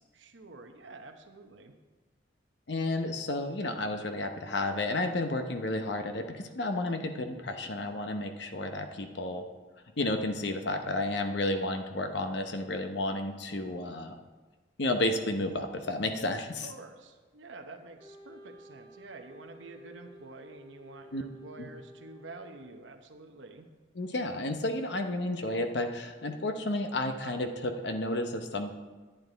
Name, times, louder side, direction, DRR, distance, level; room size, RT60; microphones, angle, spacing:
voice 1, 0.1-1.7 16.6-23.7, right 3 dB, 75° right, 5 dB, 0.9 m, -48 dB
voice 2, 2.7-9.4 10.0-14.2 14.8-16.7 21.1-21.2 21.6-21.7 23.9-28.7, left 2 dB, 65° left, 6 dB, 0.8 m, -32 dB
Wind instrument woodwind instrument, 18.0-23.1, equal, 25° left, 3.0 m, -53 dB
10.5 x 9.0 x 4.0 m, 1.3 s
head